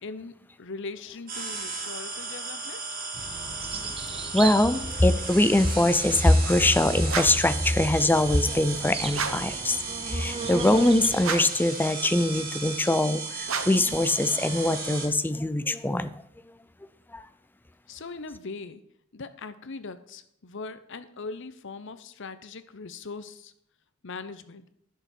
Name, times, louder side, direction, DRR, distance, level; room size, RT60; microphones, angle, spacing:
voice 1, 0.0-3.0 17.9-18.8 19.1-23.5 24.0-24.7, left 4 dB, 65° left, 12 dB, 0.8 m, -40 dB
sound 1, 1.3-15.1, right 4 dB, 45° right, 2.4 m, -35 dB
sound 2, 3.1-11.3, right 4 dB, 30° right, 0.7 m, -37 dB
voice 2, 4.3-9.8 10.1-16.2 17.1-17.2, left 1 dB, 10° left, 12 dB, 0.5 m, -23 dB
sound 3, 7.1-7.5 9.1-9.6 11.2-11.7 13.4-13.9, right 5 dB, 75° right, 1.0 m, -32 dB
11.0 x 6.8 x 6.0 m, 0.72 s
head